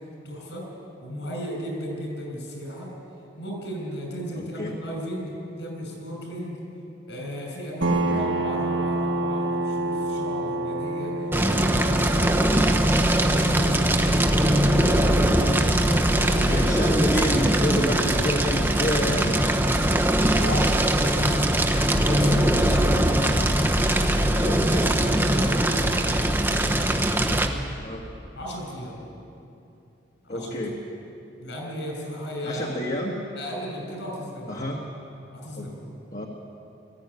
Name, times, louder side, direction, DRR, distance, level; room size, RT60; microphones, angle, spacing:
voice 1, 0.2-0.6 1.0-2.9 3.4-6.6 7.1-11.1 11.4-13.9 14.6-16.5 20.3-27.5 28.3-29.0 30.2-30.5 31.4-32.6 33.3-34.8 35.3-35.9, equal, 70° left, 1 dB, 6.3 m, -35 dB
voice 2, 4.3-4.7 7.9-8.2 15.3-16.0 16.4-19.4 21.7-22.6 23.8-24.0 24.4-24.9 26.5-26.6 27.8-28.0 30.3-30.8 32.4-33.2 34.5-34.8 35.5-35.7 36.1-36.3, equal, 40° left, -1 dB, 1.7 m, -29 dB
sound 1, 7.8-21.1, right 1 dB, 90° right, 1.7 m, -29 dB
Fire, 11.3-27.5, right 1 dB, 10° right, 1.0 m, -21 dB
sound 2, 13.8-20.9, right 2 dB, 70° right, 1.1 m, -41 dB
19.5 x 14.5 x 9.8 m, 2.7 s
head